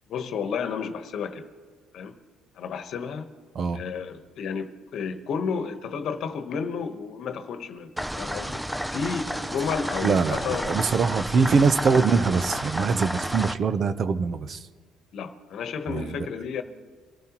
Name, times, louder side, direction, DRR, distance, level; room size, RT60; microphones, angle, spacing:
voice 1, 0.1-1.5 1.9-2.2 2.6-3.3 3.7-7.9 8.2-10.8 15.1-16.6, left 6 dB, 65° left, 9 dB, 1.1 m, -32 dB
sound 1, 8.0-13.5, equal, 5° right, 0.5 m, -31 dB
voice 2, 10.0-14.7 15.9-16.3, right 5 dB, 50° right, 12 dB, 0.7 m, -23 dB
24.0 x 13.0 x 3.0 m, 1.5 s
supercardioid pair, 85°, 0 cm